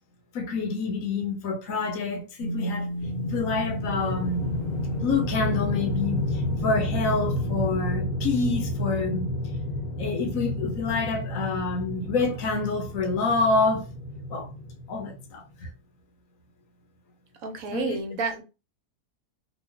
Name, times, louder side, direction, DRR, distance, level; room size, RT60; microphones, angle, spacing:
voice 1, 0.3-2.9 3.2-4.4 5.0-9.3 10.0-13.9 14.3-14.5 14.9-15.7 17.7-18.0, left 3 dB, 65° left, 1.1 m, -27 dB
sound 1, 2.4-7.8, equal, 55° right, 0.7 m, -35 dB
sound 2, 3.0-15.3, left 1 dB, 85° left, 1.4 m, -31 dB
voice 2, 17.4-18.4, right 5 dB, 70° right, 1.1 m, -30 dB
3.0 x 2.3 x 3.4 m
omnidirectional pair, 1.5 m